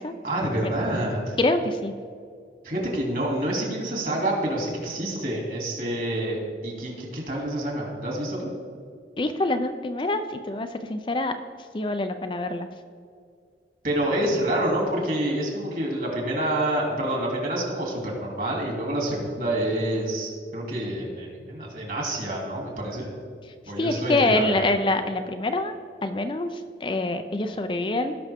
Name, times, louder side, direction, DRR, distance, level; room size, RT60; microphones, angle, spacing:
voice 1, 0.2-1.4 2.6-8.5 13.8-23.1 23.7-24.6, right 1 dB, 50° right, -1 dB, 2.7 m, -27 dB
voice 2, 1.4-1.9 9.2-11.3 11.7-12.7 23.8-25.7 26.0-28.2, left 2 dB, 30° left, 7 dB, 0.4 m, -25 dB
18.0 x 6.0 x 3.5 m, 2.2 s
head